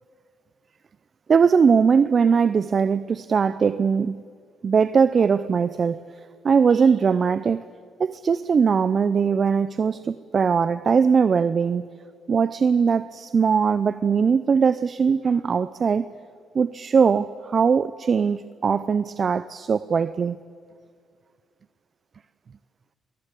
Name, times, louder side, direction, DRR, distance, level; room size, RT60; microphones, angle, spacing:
voice 1, 1.3-4.2 4.6-6.0 6.4-7.7 8.0-11.9 12.3-16.1 16.5-20.4, right 6 dB, 45° right, 0.6 m, -20 dB
26.0 x 20.0 x 8.3 m
cardioid pair, 90°, 0 cm